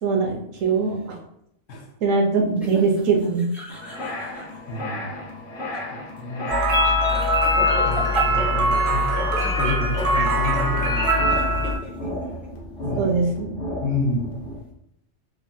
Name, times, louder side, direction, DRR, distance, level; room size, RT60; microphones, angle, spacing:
voice 1, 0.0-1.2 2.0-3.5 13.0-13.5, right 4 dB, 75° right, 1 dB, 1.1 m, -22 dB
sound 1, 0.6-1.1 2.6-4.6 5.3-5.9 6.2-6.3 7.3-8.6 8.9-9.5 9.9-10.0 11.3-12.5, equal, ahead, 0.4 m, -38 dB
sound 2, 3.7-14.6, left 1 dB, 50° left, 0.7 m, -34 dB
voice 2, 4.7-5.2 5.9-6.6 7.8-9.1 9.4-11.7 12.8-13.2 13.8-14.4, left 2 dB, 75° left, 2 dB, 1.0 m, -29 dB
sound 3, 6.5-11.7, equal, 50° right, 0.7 m, -21 dB
3.3 x 2.2 x 2.6 m, 0.77 s
omnidirectional pair, 1.3 m